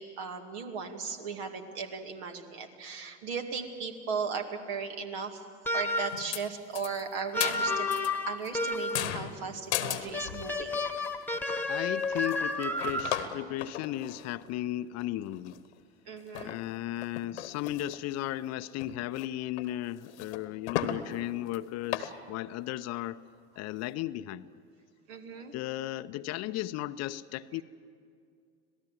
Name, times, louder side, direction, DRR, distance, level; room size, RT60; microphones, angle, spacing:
voice 1, 0.0-5.4 5.7-8.0 8.3-10.8 16.1-16.6 25.1-25.5, right 5 dB, 65° right, 5 dB, 2.3 m, -37 dB
sound 1, 5.6-6.3 7.3-9.2 10.1-13.3, left 2 dB, 5° left, 1.4 m, -31 dB
sound 2, 6.1-6.5 6.8-8.1 8.4-10.6 11.0-11.1 11.3-11.6 12.0-14.5 15.0-15.1 15.3-15.8 16.3-16.6 17.0-18.0 18.3-18.4 18.8-19.3 19.6-19.7 20.0-21.0 21.5-21.6 21.9-22.1, left 12 dB, 70° left, 1.3 m, -36 dB
voice 2, 11.7-15.6 16.4-23.2 23.6-24.5 25.5-27.6, left 14 dB, 45° left, 14 dB, 0.7 m, -35 dB
26.0 x 18.0 x 7.5 m, 2.3 s
figure-of-eight pair, 65°, 35 cm